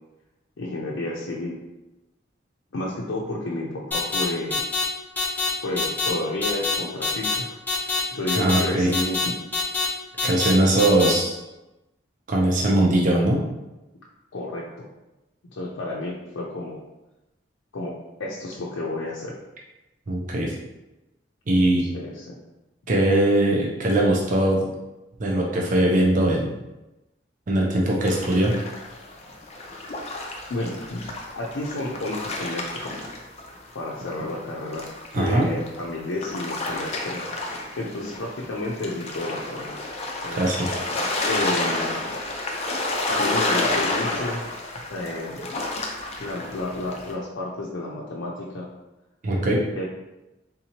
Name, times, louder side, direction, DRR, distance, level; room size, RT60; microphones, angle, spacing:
voice 1, 0.6-1.6 2.7-4.6 5.6-9.4 14.3-14.9 15.5-16.8 17.7-19.4 21.8-22.4 30.5-31.1 31.4-33.0 33.7-34.9 35.1-39.8 40.2-40.4 41.2-41.9 43.1-44.4 44.9-45.4 46.2-48.7 49.7-49.8, left 2 dB, 85° left, -5 dB, 0.5 m, -31 dB
sound 1, 3.9-4.2 4.5-4.8 5.2-5.5 5.8-6.1 6.4-6.7 7.0-7.3 7.7-8.0 8.3-8.6 8.9-9.2 9.5-9.9 10.2-10.5 10.8-11.1, left 4 dB, 10° left, 0.9 m, -24 dB
voice 2, 8.4-8.9 10.2-11.3 12.3-13.4 20.1-20.5 21.5-21.8 22.9-24.7 25.2-26.5 27.5-28.5 35.1-35.5 40.3-40.7 49.2-49.6, right 1 dB, 45° right, -2 dB, 0.5 m, -20 dB
sound 2, 28.0-33.7 34.1-47.1, left 2 dB, 35° left, 0.5 m, -30 dB
3.7 x 2.8 x 2.8 m, 0.99 s
head